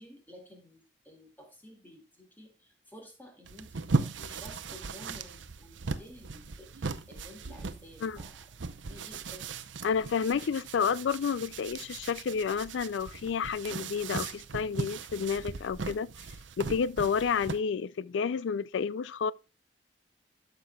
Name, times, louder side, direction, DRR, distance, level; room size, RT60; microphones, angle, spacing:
voice 1, 0.0-8.5 8.9-9.5, equal, 10° left, 2.2 m, -52 dB
sound 1, 3.4-17.6, right 4 dB, 90° right, 0.7 m, -38 dB
voice 2, 9.8-16.1 16.6-19.3, left 6 dB, 85° left, 0.4 m, -30 dB
13.0 x 6.8 x 2.3 m
head